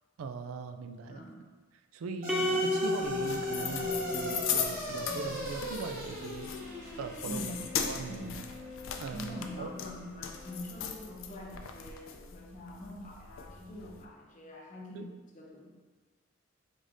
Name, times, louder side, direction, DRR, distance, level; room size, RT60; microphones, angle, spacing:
voice 1, 0.2-1.2 1.9-6.5 7.0-7.5 7.8-8.4 9.0-9.7 14.9-15.0, right 4 dB, 75° right, 8 dB, 0.3 m, -40 dB
sound 1, 2.2-10.7, equal, 45° right, 0.8 m, -40 dB
sound 2, 2.3-4.8, left 1 dB, ahead, 0.5 m, -32 dB
sound 3, 3.0-14.0, left 8 dB, 65° left, 0.4 m, -39 dB
voice 2, 7.3-7.6 8.1-8.5 9.1-15.7, left 1 dB, 40° left, -2 dB, 0.8 m, -44 dB
5.0 x 3.9 x 2.6 m, 1.4 s
head